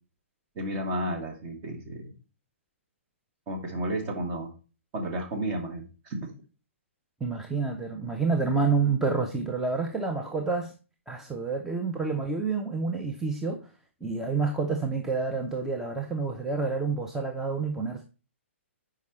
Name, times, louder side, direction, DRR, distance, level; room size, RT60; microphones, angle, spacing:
voice 1, 0.6-2.1 3.5-4.5 4.9-6.3, right 1 dB, 30° right, 1.8 m, -32 dB
voice 2, 7.2-10.7 11.1-13.7 14.0-18.0, right 4 dB, 5° right, 0.6 m, -28 dB
8.1 x 4.9 x 3.1 m
figure-of-eight pair, 125°, 7 cm